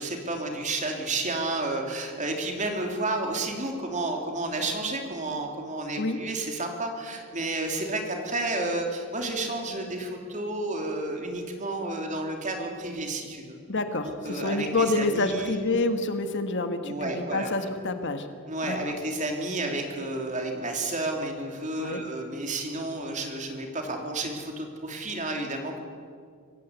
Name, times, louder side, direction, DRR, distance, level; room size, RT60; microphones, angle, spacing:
voice 1, 0.0-13.6 14.0-15.6 16.8-17.7 18.5-25.8, right 2 dB, 35° right, 3 dB, 3.1 m, -31 dB
voice 2, 13.7-18.3 18.6-18.8 21.8-22.0, left 2 dB, 55° left, 8 dB, 1.6 m, -28 dB
25.5 x 16.0 x 8.2 m, 2.2 s
head